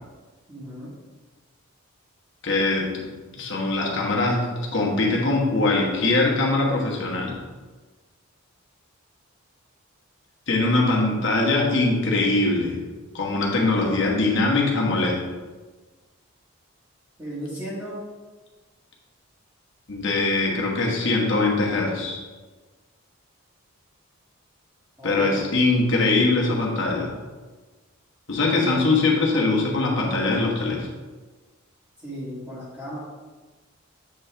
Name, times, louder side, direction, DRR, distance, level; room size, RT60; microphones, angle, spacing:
voice 1, 0.5-0.9 17.2-18.0 25.0-25.5 32.0-33.0, equal, 15° right, -11 dB, 1.4 m, -34 dB
voice 2, 2.4-3.1 3.4-4.5 4.7-7.3 10.5-12.8 13.1-15.2 19.9-22.2 25.0-27.2 28.3-30.9, left 2 dB, 55° left, -2 dB, 1.3 m, -22 dB
7.8 x 4.3 x 3.3 m, 1.3 s
head